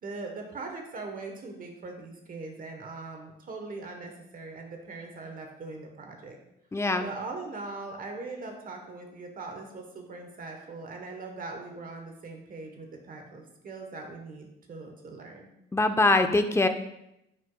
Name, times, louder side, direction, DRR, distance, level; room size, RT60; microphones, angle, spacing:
voice 1, 0.0-6.4 7.0-15.5, right 3 dB, 45° right, 3 dB, 1.0 m, -41 dB
voice 2, 6.7-7.0 15.7-16.7, left 2 dB, 15° left, 7 dB, 0.5 m, -23 dB
10.5 x 4.8 x 2.2 m, 0.82 s
cardioid pair, 90°, 20 cm